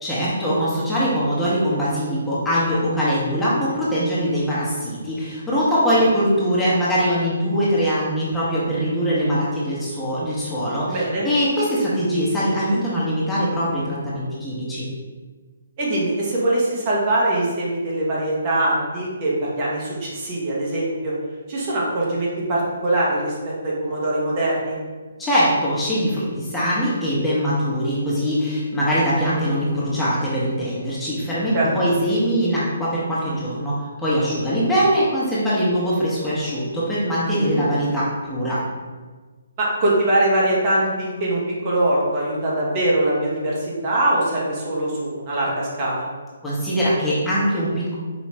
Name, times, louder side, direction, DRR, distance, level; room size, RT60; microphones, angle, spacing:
voice 1, 0.0-14.9 25.2-38.6 46.4-48.0, equal, 10° left, -9 dB, 0.9 m, -22 dB
voice 2, 10.9-11.3 15.8-21.1 21.5-24.8 31.5-31.7 37.4-37.6 39.6-46.1, right 1 dB, 35° right, -5 dB, 1.1 m, -22 dB
5.0 x 2.4 x 3.2 m, 1.4 s
figure-of-eight pair, 135°, 0 cm